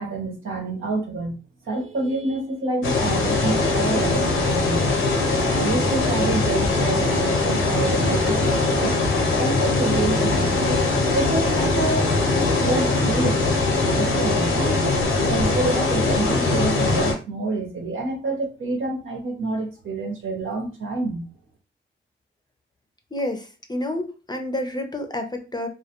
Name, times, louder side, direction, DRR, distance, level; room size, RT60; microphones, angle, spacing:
voice 1, 0.0-1.4 1.6-4.8 5.5-9.0 9.4-10.8 11.1-12.2 12.6-13.4 13.9-21.3, right 2 dB, 75° right, 1 dB, 0.9 m, -28 dB
sound 1, 2.8-17.1, left 3 dB, 90° left, 0.7 m, -21 dB
voice 2, 23.1-25.7, left 1 dB, 20° left, 5 dB, 0.5 m, -29 dB
2.2 x 2.2 x 2.8 m, 0.32 s
cardioid pair, 60°, 21 cm